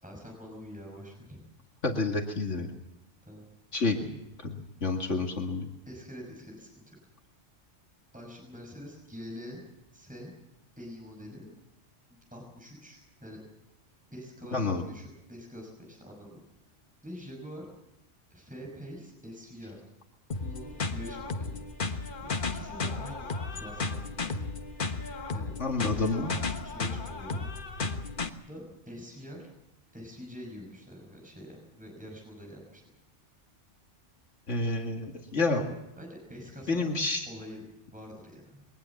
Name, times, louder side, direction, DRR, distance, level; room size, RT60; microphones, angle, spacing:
voice 1, 0.0-1.4 3.2-3.5 5.9-7.0 8.1-9.6 9.9-10.3 10.7-11.5 12.3-13.4 14.1-16.4 17.0-17.7 18.3-19.8 20.4-21.6 22.2-24.3 25.3-27.5 28.4-29.5 29.9-32.8 36.0-36.9 37.3-38.7, equal, 5° right, 0 dB, 5.7 m, -45 dB
voice 2, 1.8-2.7 3.7-4.1 4.4-5.7 14.5-14.8 25.6-26.3 34.5-35.7 36.7-37.3, left 3 dB, 75° left, 2 dB, 2.4 m, -29 dB
sound 1, 20.3-28.3, left 3 dB, 45° left, 1.4 m, -34 dB
23.0 x 19.0 x 7.2 m, 0.90 s
omnidirectional pair, 1.2 m